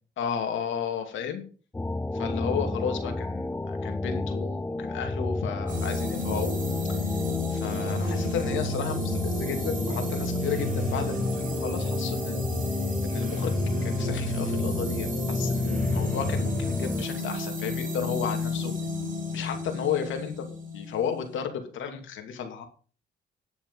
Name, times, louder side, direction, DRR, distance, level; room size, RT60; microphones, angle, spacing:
voice 1, 0.2-1.4 2.1-6.6 6.9-7.0 7.5-12.5 13.0-13.5 13.8-18.7 19.3-20.5 20.7-22.7, left 7 dB, 80° left, 5 dB, 2.5 m, -33 dB
sound 1, 1.7-17.1, left 2 dB, 10° left, 0.5 m, -30 dB
sound 2, 5.7-21.4, left 1 dB, 40° right, 6.7 m, -33 dB
10.0 x 7.2 x 5.6 m, 0.39 s
cardioid pair, 90°, 20 cm